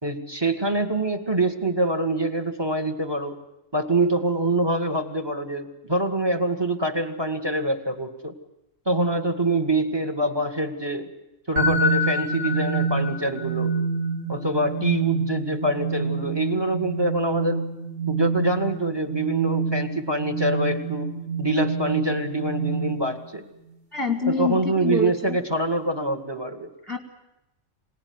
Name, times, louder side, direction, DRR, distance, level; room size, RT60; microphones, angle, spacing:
voice 1, 0.0-3.4 3.7-8.3 8.9-11.1 11.5-13.8 14.3-17.6 18.1-21.1 21.4-23.5 24.3-26.7, right 1 dB, 20° right, 8 dB, 1.9 m, -25 dB
sound 1, 11.6-23.3, right 3 dB, 65° right, 4.1 m, -27 dB
voice 2, 23.9-25.4 26.8-27.0, left 3 dB, ahead, 4 dB, 2.0 m, -26 dB
26.5 x 18.5 x 9.6 m, 0.92 s
omnidirectional pair, 1.3 m